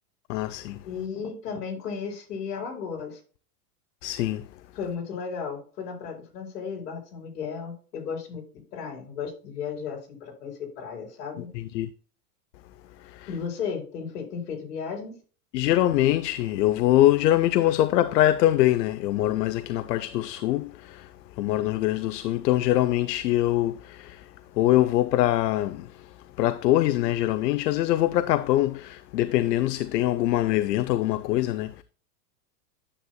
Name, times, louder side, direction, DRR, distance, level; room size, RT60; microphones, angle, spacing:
voice 1, 0.3-0.9 4.0-4.5 11.5-11.9 13.0-13.3 15.5-31.8, left 14 dB, 90° left, 0.6 m, -24 dB
voice 2, 0.8-3.2 4.7-11.5 13.3-15.2, left 6 dB, 75° left, 4.7 m, -34 dB
10.0 x 7.8 x 2.2 m
supercardioid pair, 160°, 47 cm